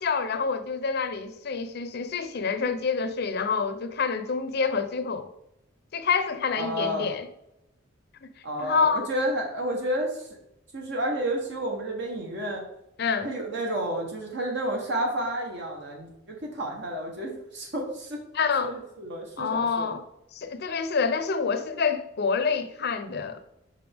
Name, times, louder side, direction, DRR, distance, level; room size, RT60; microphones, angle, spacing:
voice 1, 0.0-5.3 5.9-7.3 8.2-8.3 8.6-9.1 13.0-13.3 18.3-18.7 19.4-20.0 20.3-23.4, left 5 dB, 55° left, 0.6 m, -27 dB
voice 2, 6.5-7.1 8.4-10.3 10.7-12.6 13.2-18.2 18.6-19.9, right 1 dB, 65° right, 1.1 m, -31 dB
5.4 x 5.1 x 3.5 m
head